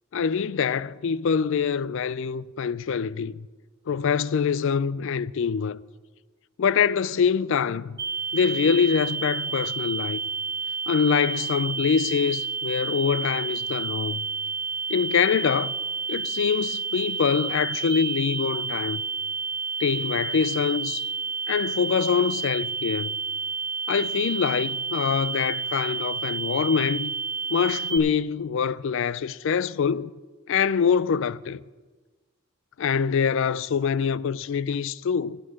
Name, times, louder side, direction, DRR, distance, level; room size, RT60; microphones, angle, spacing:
voice 1, 0.1-3.5 3.9-5.8 6.6-8.0 8.3-10.2 10.9-14.2 14.9-15.7 16.1-19.0 19.8-21.1 21.5-23.1 23.9-27.1 27.5-30.1 30.5-31.6 32.8-35.4, left 6 dB, 60° left, 0.4 m, -24 dB
sound 1, 8.0-28.0, right 5 dB, 15° right, 3.5 m, -30 dB
9.8 x 9.5 x 8.8 m
head